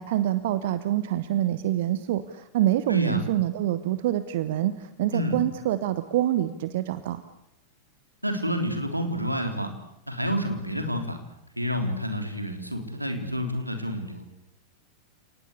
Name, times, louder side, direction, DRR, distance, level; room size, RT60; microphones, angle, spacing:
voice 1, 0.0-7.2, right 13 dB, 55° right, 13 dB, 1.2 m, -26 dB
voice 2, 2.9-3.2 5.1-5.4 8.2-9.7 10.1-11.2 11.6-14.3, equal, 90° right, 6 dB, 3.6 m, -29 dB
30.0 x 19.0 x 8.4 m, 0.79 s
figure-of-eight pair, 90°, 0 cm